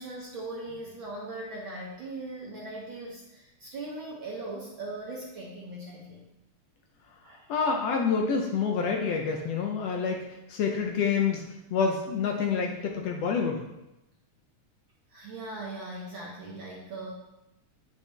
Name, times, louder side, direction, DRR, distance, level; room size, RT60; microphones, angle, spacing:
voice 1, 0.0-6.2 7.2-7.4 15.1-17.1, right 2 dB, 60° right, -3 dB, 1.4 m, -39 dB
voice 2, 7.5-10.2 10.5-11.4 11.7-13.7, left 5 dB, 70° left, 2 dB, 1.7 m, -27 dB
8.9 x 5.7 x 3.4 m, 0.91 s
omnidirectional pair, 3.4 m